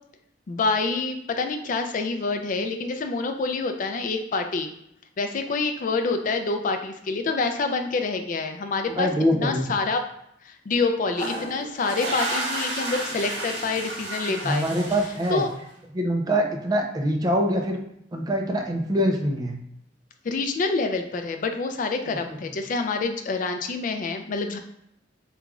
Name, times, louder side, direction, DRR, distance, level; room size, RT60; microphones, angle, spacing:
voice 1, 0.5-4.7 5.2-10.0 10.4-14.7 15.3-15.5 20.2-24.6, left 3 dB, 45° left, 6 dB, 0.4 m, -27 dB
voice 2, 8.9-9.7 14.3-15.4 15.9-17.8 18.1-19.6 22.1-22.4, equal, 20° right, 2 dB, 0.4 m, -24 dB
sound 1, 11.1-15.6, right 1 dB, 65° right, 1.1 m, -32 dB
3.0 x 2.3 x 3.6 m, 0.75 s
head